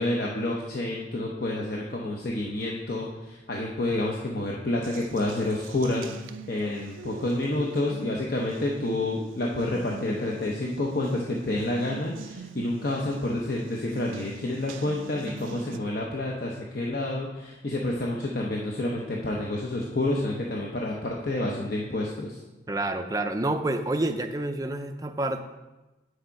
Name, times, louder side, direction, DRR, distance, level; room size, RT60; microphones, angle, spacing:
voice 1, 0.0-6.0 6.5-22.4, left 1 dB, 50° left, -2 dB, 0.8 m, -29 dB
Water tap faucet, 4.8-15.8, right 4 dB, 90° right, 0.5 m, -43 dB
voice 2, 22.7-25.4, right 2 dB, 20° right, 7 dB, 0.5 m, -28 dB
8.6 x 6.5 x 4.6 m, 1.1 s
head